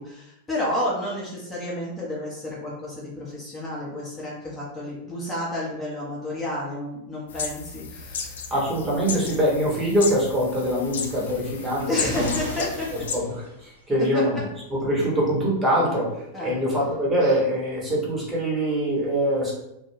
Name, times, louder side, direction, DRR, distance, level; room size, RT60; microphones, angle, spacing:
voice 1, 0.0-8.5 11.9-12.9 16.3-16.6, left 1 dB, 15° left, -6 dB, 0.7 m, -31 dB
sound 1, 7.3-13.2, left 5 dB, 60° left, 0.3 m, -34 dB
voice 2, 8.5-11.9 12.2-12.4 13.1-14.4 14.7-16.1 16.4-19.5, equal, 15° right, -5 dB, 0.9 m, -23 dB
sound 2, 10.6-13.9 14.9-15.0, equal, 85° right, 0.6 m, -39 dB
2.2 x 2.2 x 3.1 m, 0.84 s
figure-of-eight pair, 90°, 0 cm